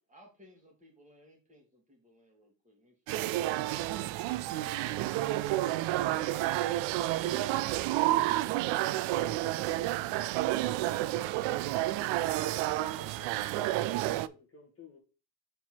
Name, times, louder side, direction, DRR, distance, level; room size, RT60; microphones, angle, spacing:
voice 1, 0.1-4.1, equal, 15° right, 2.6 m, -61 dB
sound 1, 3.1-14.3, right 15 dB, 80° right, 0.5 m, -30 dB
voice 2, 12.4-15.0, left 3 dB, 30° left, 1.8 m, -53 dB
4.6 x 4.4 x 5.9 m
cardioid pair, 115°, 46 cm